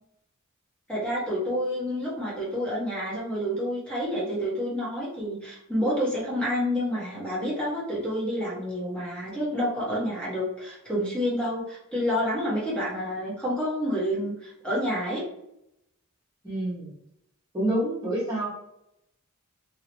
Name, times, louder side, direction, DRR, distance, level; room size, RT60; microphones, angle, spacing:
voice 1, 0.9-15.2, equal, 5° left, -8 dB, 1.1 m, -29 dB
voice 2, 16.4-16.9 17.5-18.5, right 1 dB, 20° right, -7 dB, 1.1 m, -27 dB
3.0 x 2.8 x 3.0 m, 0.80 s
head